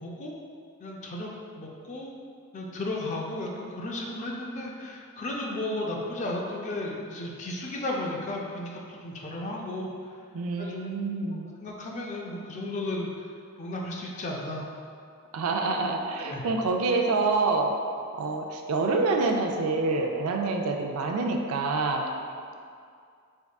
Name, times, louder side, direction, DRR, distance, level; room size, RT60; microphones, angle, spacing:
voice 1, 0.0-0.3 0.8-1.3 1.6-2.1 2.5-9.9 10.6-10.8 11.3-13.3 13.6-14.7 16.2-16.4, left 1 dB, 35° left, -1 dB, 0.4 m, -34 dB
voice 2, 10.3-11.5 15.3-17.7 18.2-22.1, right 3 dB, 70° right, 2 dB, 0.3 m, -27 dB
3.6 x 3.4 x 2.3 m, 2.3 s
head